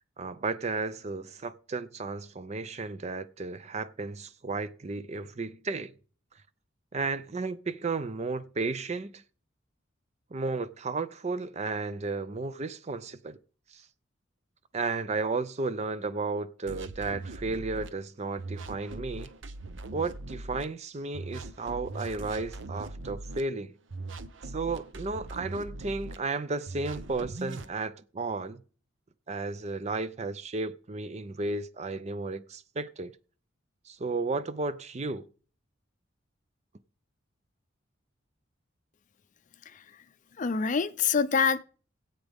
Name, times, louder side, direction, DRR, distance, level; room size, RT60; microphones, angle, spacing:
voice 1, 0.2-5.9 6.9-9.2 10.3-13.4 13.7-13.8 14.7-19.3 19.9-23.7 24.5-28.6 29.3-33.1 33.9-35.2, right 3 dB, 35° right, 0.5 m, -33 dB
sound 1, 16.7-17.9 18.4-20.6 21.1-23.4 23.9-26.2 26.7-27.7, right 2 dB, 70° right, 0.8 m, -40 dB
voice 2, 39.7-40.0 40.4-41.6, left 6 dB, 40° left, 0.5 m, -26 dB
17.0 x 8.2 x 3.5 m
head